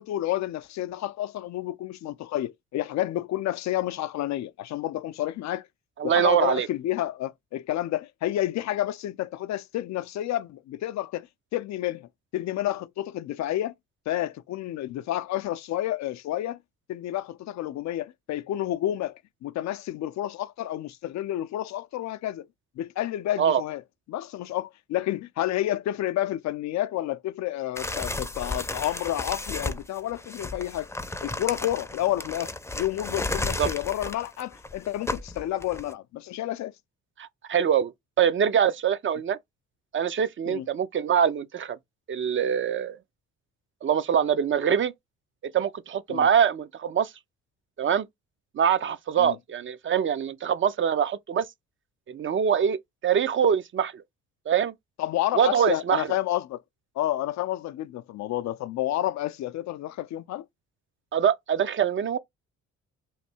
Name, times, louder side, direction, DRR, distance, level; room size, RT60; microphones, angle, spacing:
voice 1, 0.0-5.7 6.0-11.3 11.5-13.7 14.1-16.6 16.9-22.5 22.8-23.8 24.1-30.9 31.2-36.7 40.5-40.7 46.1-46.3 49.2-49.4 55.0-56.6 57.0-60.5, left 13 dB, 65° left, 0.4 m, -30 dB
voice 2, 6.0-6.7 23.4-23.6 33.6-33.7 37.2-37.9 38.2-39.4 39.9-41.8 42.1-43.0 43.8-44.9 45.5-47.1 47.8-48.1 48.5-51.5 52.1-54.0 54.5-54.7 55.3-56.1 61.1-62.2, right 8 dB, 40° right, 0.5 m, -24 dB
sound 1, 27.8-35.9, left 2 dB, 10° left, 0.5 m, -33 dB
3.2 x 2.6 x 4.2 m
cardioid pair, 90°, 30 cm